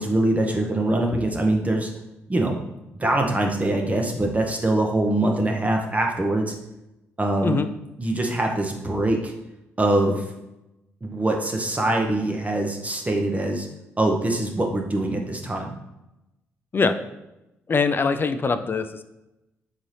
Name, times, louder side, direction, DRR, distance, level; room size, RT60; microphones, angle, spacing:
voice 1, 0.0-1.9 2.3-2.6 3.0-6.5 7.2-7.6 8.0-9.3 9.8-10.2 11.0-13.7 14.0-15.7, right 1 dB, 20° right, 1 dB, 0.8 m, -23 dB
voice 2, 17.7-19.0, left 4 dB, 35° left, 9 dB, 0.4 m, -22 dB
4.0 x 3.8 x 3.2 m, 0.93 s
hypercardioid pair, 45°, 7 cm